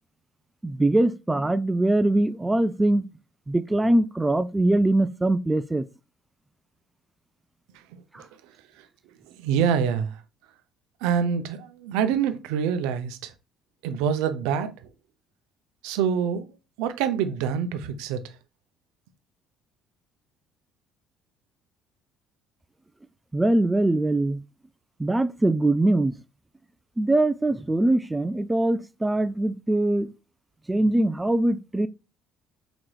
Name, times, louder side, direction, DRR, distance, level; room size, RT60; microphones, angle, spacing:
voice 1, 0.6-3.1 3.5-5.8 8.1-8.2 23.3-24.4 25.0-26.2 27.0-30.1 30.7-31.9, right 1 dB, 15° right, 0.4 m, -22 dB
voice 2, 9.4-10.2 11.0-13.3 13.8-14.7 15.8-16.5 16.8-18.2, right 7 dB, 80° right, 0.5 m, -25 dB
5.0 x 3.0 x 2.3 m
supercardioid pair, 70°, 0 cm